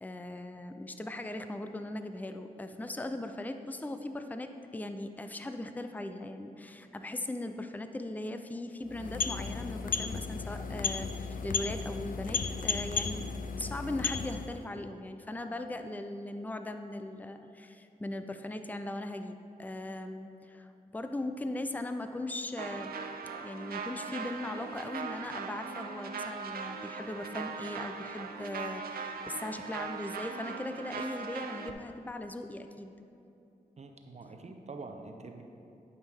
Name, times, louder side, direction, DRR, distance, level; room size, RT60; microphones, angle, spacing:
voice 1, 0.0-13.3 13.6-23.0 23.4-32.9, left 1 dB, 10° left, 7 dB, 0.5 m, -39 dB
sound 1, 8.8-14.6, left 5 dB, 60° left, 0.5 m, -34 dB
sound 2, 22.6-31.7, right 5 dB, 80° right, 0.5 m, -40 dB
voice 2, 33.8-35.4, right 3 dB, 45° right, 4 dB, 0.8 m, -45 dB
11.0 x 5.5 x 3.5 m, 2.8 s
cardioid pair, 55°, 15 cm